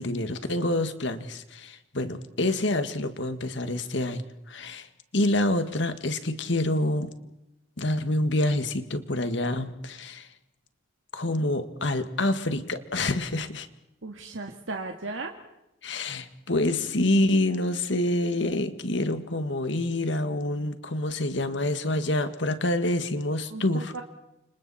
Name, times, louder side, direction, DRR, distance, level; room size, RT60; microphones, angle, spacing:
voice 1, 0.0-4.9 5.1-7.1 7.8-10.3 11.1-13.7 15.8-23.9, left 1 dB, 70° left, 9 dB, 1.9 m, -27 dB
voice 2, 14.0-15.3 23.5-24.0, right 3 dB, 85° right, 2 dB, 2.0 m, -36 dB
30.0 x 26.5 x 4.3 m, 0.90 s
head